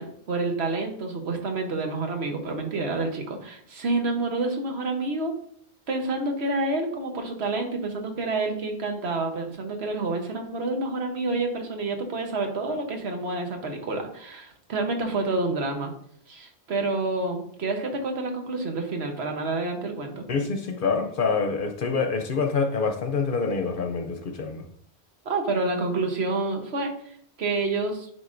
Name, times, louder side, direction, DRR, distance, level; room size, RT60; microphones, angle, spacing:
voice 1, 0.0-5.3 5.9-15.9 16.3-20.2 25.2-28.1, right 3 dB, 75° right, 4 dB, 1.3 m, -28 dB
voice 2, 20.3-24.7, left 4 dB, 55° left, 4 dB, 0.8 m, -26 dB
9.9 x 3.7 x 2.5 m, 0.66 s
omnidirectional pair, 1.1 m